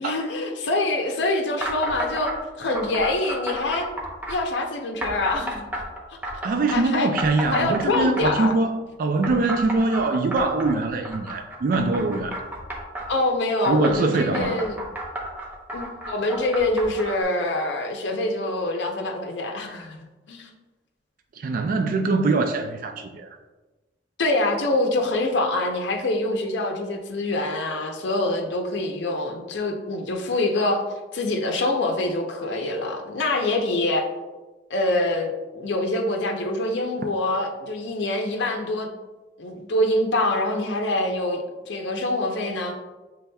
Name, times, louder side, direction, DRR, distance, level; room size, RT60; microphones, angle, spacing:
voice 1, 0.0-2.3 2.6-3.9 4.3-5.7 6.1-6.2 6.7-7.1 7.5-8.5 13.1-14.8 15.7-20.0 20.3-20.5 24.2-30.8 31.1-34.0 34.7-38.9 39.4-42.7, left 2 dB, 80° left, 3 dB, 0.6 m, -25 dB
sound 1, 1.6-2.4 2.7-4.4 5.0-6.8 7.2-8.5 9.2-13.1 13.6-17.2, right 1 dB, 10° right, 0.8 m, -32 dB
voice 2, 6.4-12.4 13.7-14.6 21.4-23.4, right 3 dB, 50° right, 5 dB, 0.3 m, -23 dB
6.8 x 3.4 x 2.2 m, 1.2 s
head